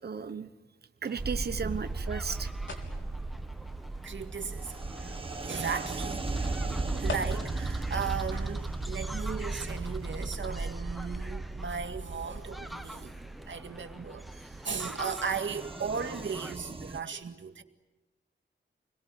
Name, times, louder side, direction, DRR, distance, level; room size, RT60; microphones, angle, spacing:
voice 1, 0.0-0.5 1.0-2.5 6.9-7.0, right 6 dB, 55° right, 1.1 m, -35 dB
sound 1, 1.1-16.6, equal, ahead, 1.0 m, -47 dB
sound 2, 1.2-17.0, right 3 dB, 30° right, 1.6 m, -36 dB
sound 3, 1.3-7.7, left 3 dB, 80° left, 4.0 m, -47 dB
voice 2, 4.0-5.1 5.4-13.1 13.5-17.6, right 6 dB, 75° right, 2.0 m, -37 dB
28.5 x 22.0 x 9.4 m
wide cardioid pair, 130°, 19 cm